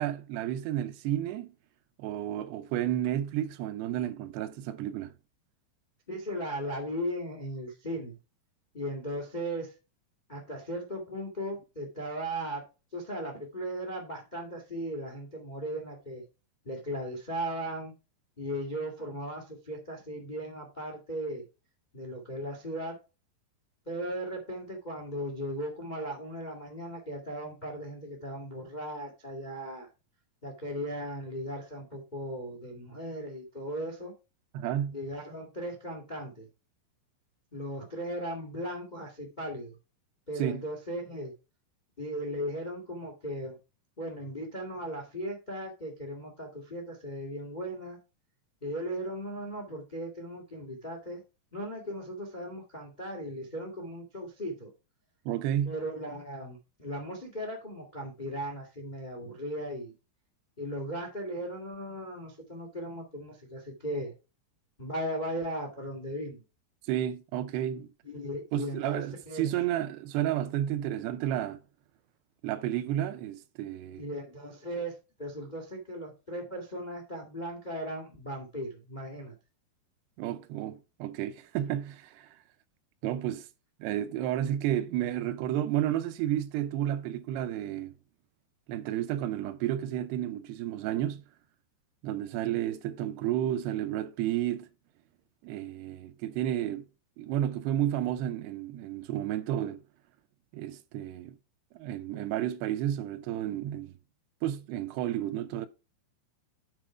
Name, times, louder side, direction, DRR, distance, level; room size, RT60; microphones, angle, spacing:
voice 1, 0.0-1.5 2.0-5.1 34.5-35.0 40.4-40.6 55.3-55.7 66.9-67.9 68.5-71.6 72.4-74.0 80.2-82.4 83.0-83.5 83.8-87.9 88.7-91.2 92.0-94.7 95.4-96.9 97.2-99.8 100.5-101.4 101.7-103.9 104.4-105.7, right 12 dB, 80° right, 2.7 m, -31 dB
voice 2, 6.1-8.2 8.7-9.7 10.3-12.6 12.9-16.2 16.6-17.9 18.4-21.4 21.9-23.0 23.8-29.9 30.4-34.1 34.9-36.5 37.5-39.7 40.3-41.3 42.0-43.6 44.0-48.0 48.6-51.2 51.5-54.7 55.6-59.9 60.6-64.1 64.8-66.4 68.0-69.5 73.9-74.9 75.2-79.3, equal, 55° left, 0.4 m, -37 dB
9.3 x 4.4 x 4.9 m
omnidirectional pair, 4.9 m